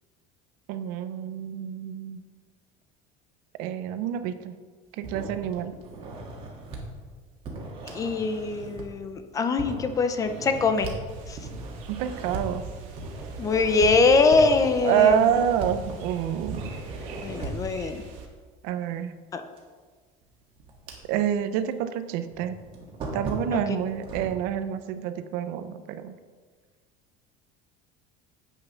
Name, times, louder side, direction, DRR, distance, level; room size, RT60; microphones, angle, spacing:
voice 1, 0.7-2.2 3.6-4.6 4.9-5.8 11.9-12.6 14.8-16.6 18.6-19.1 21.1-22.6 23.1-26.1, right 9 dB, 60° right, 11 dB, 0.6 m, -27 dB
sound 1, 5.0-6.8 7.4-9.1 9.6-11.0 11.4-12.4 12.9-13.9 14.3-16.1 16.5-17.7 19.6-19.7 20.2-21.4 21.7-21.8 22.3-24.3, right 2 dB, 35° right, 1.7 m, -38 dB
voice 2, 7.8-10.9 11.3-11.4 13.4-15.3 17.2-18.0 19.3-19.4 23.5-23.6, left 4 dB, 20° left, 8 dB, 0.5 m, -23 dB
sound 2, 11.1-18.3, right 4 dB, 80° right, 1.9 m, -42 dB
8.4 x 6.6 x 5.6 m, 1.5 s
cardioid pair, 170°, 17 cm